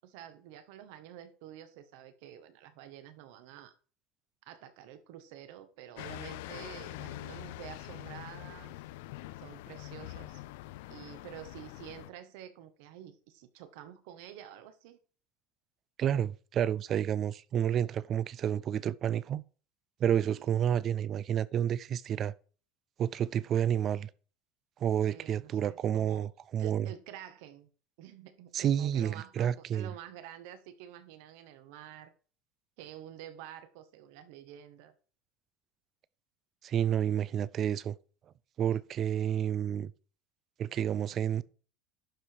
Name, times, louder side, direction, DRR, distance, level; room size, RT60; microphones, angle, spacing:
voice 1, 0.0-3.7 4.4-8.8 9.4-10.4 10.9-15.0 20.1-20.5 25.1-26.3 26.6-27.7 28.0-32.1 32.8-34.9 38.7-38.8, right 11 dB, 70° right, 1.5 m, -49 dB
sound 1, 6.0-12.1, left 17 dB, 80° left, 0.6 m, -44 dB
voice 2, 16.0-19.4 20.0-22.3 23.0-24.1 24.8-26.9 28.5-29.9 36.6-37.9 38.6-39.9 40.6-41.4, right 9 dB, 30° right, 0.4 m, -30 dB
11.5 x 5.0 x 4.6 m
cardioid pair, 170°, 0 cm